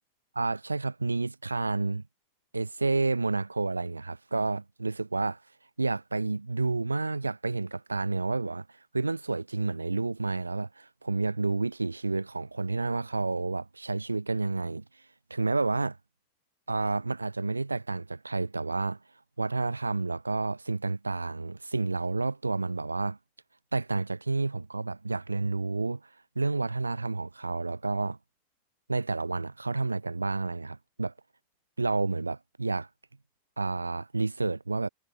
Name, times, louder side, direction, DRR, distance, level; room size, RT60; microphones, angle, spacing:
voice 1, 0.4-2.0 2.5-5.4 5.8-8.6 8.9-14.8 15.3-16.0 16.7-19.0 19.4-23.2 23.7-26.0 26.4-28.2 28.9-31.1 31.8-32.9 33.6-34.9, right 3 dB, 80° right, 0.4 m, -30 dB
figure-of-eight pair, 90°, 0 cm